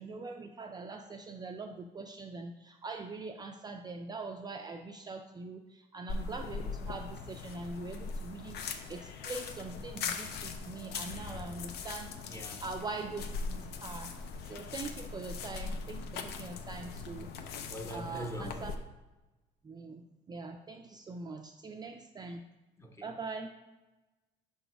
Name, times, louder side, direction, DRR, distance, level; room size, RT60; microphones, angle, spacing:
voice 1, 0.0-12.1 12.6-14.2 14.5-17.6 17.9-18.7 19.6-22.4 23.0-23.5, right 3 dB, 25° right, 4 dB, 0.3 m, -43 dB
sound 1, 6.1-18.7, left 5 dB, 75° left, 0.6 m, -40 dB
voice 2, 12.3-12.6 17.7-18.6 22.8-23.1, right 1 dB, 15° left, 3 dB, 0.8 m, -42 dB
5.4 x 3.9 x 4.6 m, 1.1 s
cardioid pair, 110°, 17 cm